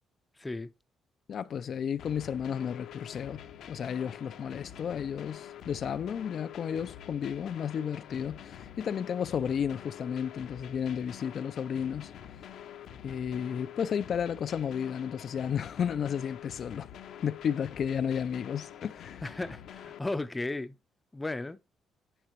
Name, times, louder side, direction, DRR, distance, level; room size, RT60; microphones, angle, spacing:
voice 1, 0.4-0.7 19.2-20.7 21.1-21.6, left 2 dB, 15° left, 0.7 m, -35 dB
voice 2, 1.3-3.4 3.7-12.1 13.0-16.9 17.2-19.2, left 8 dB, 60° left, 0.5 m, -33 dB
sound 1, 2.0-20.0, left 9 dB, 75° left, 0.9 m, -47 dB
10.0 x 6.1 x 3.1 m
cardioid pair, 90°, 0 cm